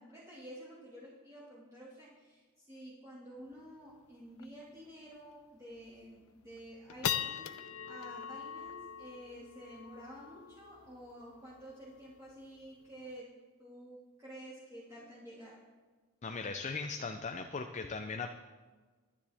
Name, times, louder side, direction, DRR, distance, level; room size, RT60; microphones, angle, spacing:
voice 1, 0.0-13.3 13.6-15.6, equal, 15° right, -8 dB, 2.2 m, -51 dB
sound 1, 3.5-3.6 3.9-4.0 4.4-4.6 5.1-5.2 5.8-6.1 6.6-13.1, left 9 dB, 80° left, 0.6 m, -42 dB
voice 2, 16.2-18.3, left 4 dB, 35° left, 6 dB, 0.5 m, -38 dB
22.0 x 10.0 x 3.5 m, 1.4 s
head